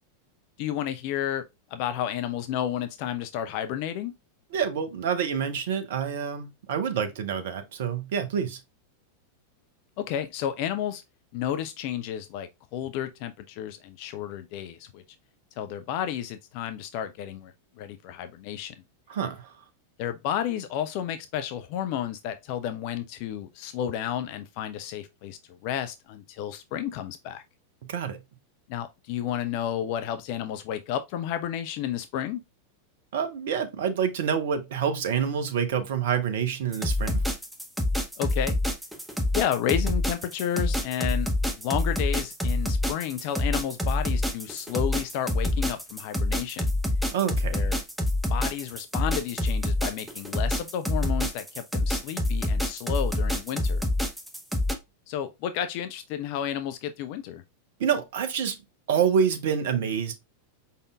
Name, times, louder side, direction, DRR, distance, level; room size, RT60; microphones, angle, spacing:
voice 1, 0.6-1.4 1.7-4.1 10.1-11.0 11.3-15.0 15.6-18.7 20.0-27.4 28.7-32.4 38.2-38.6 39.3-46.7 47.5-47.8 48.3-53.8 55.1-57.4, left 10 dB, 45° left, 0.4 m, -31 dB
voice 2, 4.5-8.6 19.1-19.5 27.9-28.2 33.1-37.2 47.1-47.6 57.8-58.6 58.9-60.2, right 7 dB, 55° right, 0.7 m, -27 dB
sound 1, 36.7-54.7, left 1 dB, ahead, 0.8 m, -26 dB
5.0 x 4.1 x 2.3 m
figure-of-eight pair, 90°, 0 cm